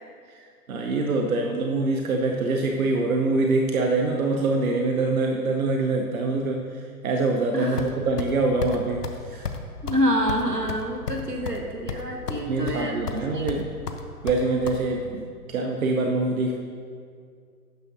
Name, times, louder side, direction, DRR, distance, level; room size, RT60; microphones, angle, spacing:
voice 1, 0.7-9.4 12.5-13.7 14.2-15.2 15.5-16.5, right 3 dB, 60° right, 2 dB, 0.9 m, -24 dB
voice 2, 7.5-7.8 9.8-13.1 13.3-13.5, equal, 85° right, 1 dB, 1.6 m, -27 dB
sound 1, 7.8-8.3 8.6-8.8 9.0-9.2 9.4-9.6 9.9-10.0 10.3-11.6 11.9-12.4 12.7-13.2 13.5-14.8, left 6 dB, 75° left, 0.9 m, -32 dB
12.0 x 9.7 x 2.7 m, 2.2 s
figure-of-eight pair, 115°, 47 cm